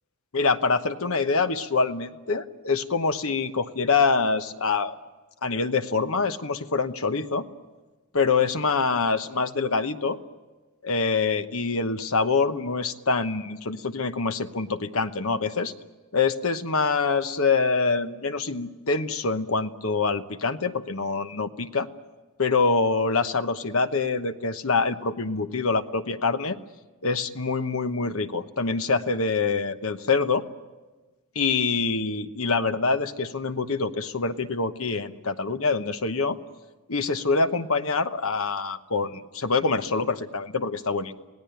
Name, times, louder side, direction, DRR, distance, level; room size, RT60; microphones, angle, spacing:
voice 1, 0.3-5.0 5.4-7.4 8.1-10.2 10.8-15.7 16.1-21.9 22.4-26.6 27.0-30.4 31.3-36.4 36.9-41.1, left 4 dB, 65° left, 10 dB, 1.1 m, -25 dB
27.0 x 18.0 x 9.3 m, 1.3 s
head